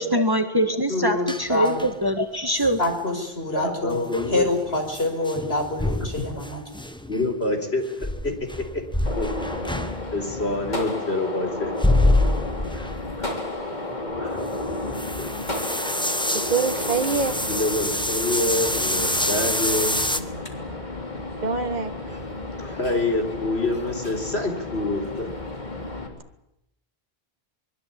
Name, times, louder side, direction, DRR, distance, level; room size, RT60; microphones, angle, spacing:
voice 1, 0.0-2.8, equal, 20° right, 6 dB, 1.8 m, -23 dB
voice 2, 0.9-1.7 2.8-6.6, left 2 dB, 70° left, 4 dB, 6.2 m, -26 dB
sound 1, 1.3-2.1 2.6-2.9 3.9-7.3 8.0-10.4 11.6-13.3 13.6-13.7 14.1-20.2, left 1 dB, 5° left, 1.2 m, -26 dB
voice 3, 3.5-4.5 6.2-6.3 7.1-8.3 8.7-8.8 9.1-9.5 10.1-11.7 12.7-12.9 13.2-13.3 14.2-14.8 15.2-15.3 17.5-20.1 22.6-25.3, left 2 dB, 85° left, 5 dB, 4.6 m, -27 dB
Gunshot gunfire, 9.0-26.1, left 2 dB, 45° left, 3.6 m, -32 dB
voice 4, 16.3-17.4 21.4-21.9, right 5 dB, 45° right, 7 dB, 1.8 m, -24 dB
24.5 x 22.5 x 8.7 m, 0.84 s
omnidirectional pair, 1.0 m